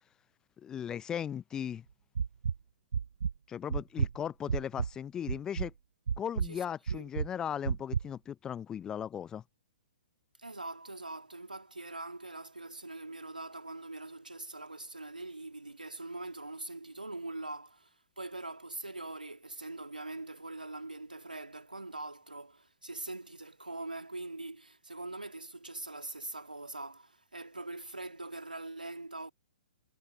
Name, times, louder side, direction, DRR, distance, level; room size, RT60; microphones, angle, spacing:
voice 1, 0.6-1.8 3.5-5.7 6.2-9.4, left 9 dB, 15° left, 0.4 m, -37 dB
sound 1, 2.2-2.6 2.9-3.3 3.7-4.9 5.3-5.7 6.1-6.5 6.9-7.3 7.7-8.0, right 6 dB, 70° right, 0.3 m, -31 dB
voice 2, 6.5-7.1 10.4-29.3, right 2 dB, 85° right, 2.1 m, -43 dB
figure-of-eight pair, 120°, 5 cm